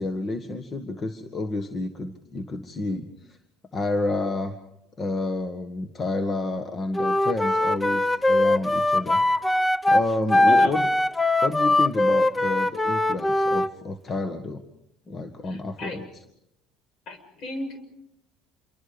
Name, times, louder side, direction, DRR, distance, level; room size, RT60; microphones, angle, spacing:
voice 1, 0.0-3.4 3.7-4.6 5.0-9.2 9.9-10.9 11.4-14.6 15.1-16.0, left 2 dB, 35° left, 7 dB, 1.8 m, -30 dB
Wind instrument woodwind instrument, 6.9-13.7, left 1 dB, 15° left, 0.8 m, -21 dB
voice 2, 15.4-16.0 17.1-17.9, left 2 dB, 60° left, 8 dB, 6.5 m, -35 dB
27.5 x 24.5 x 5.2 m, 0.80 s
supercardioid pair, 85°, 0 cm